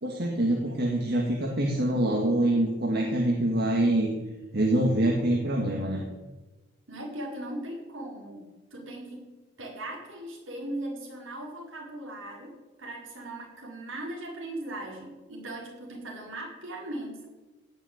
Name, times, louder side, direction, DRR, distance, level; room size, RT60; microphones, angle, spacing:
voice 1, 0.0-4.1 4.5-6.0, right 1 dB, 50° right, 0 dB, 1.8 m, -25 dB
voice 2, 6.9-9.3 9.6-17.2, right 1 dB, 65° right, -1 dB, 4.7 m, -39 dB
17.0 x 6.5 x 8.7 m, 1.1 s
head